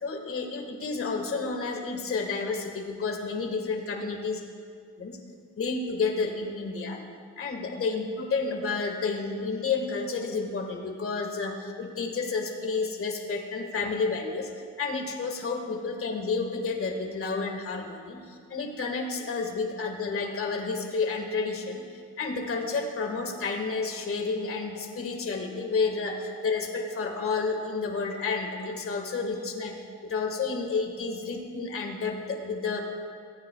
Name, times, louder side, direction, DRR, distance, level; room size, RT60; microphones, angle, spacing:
voice 1, 0.0-4.3 5.0-5.2 5.6-7.0 7.4-14.5 14.8-21.8 22.2-29.7 30.0-32.8, left 4 dB, 45° left, 3 dB, 1.7 m, -30 dB
18.0 x 9.2 x 2.4 m, 2.1 s
cardioid pair, 90°, 30 cm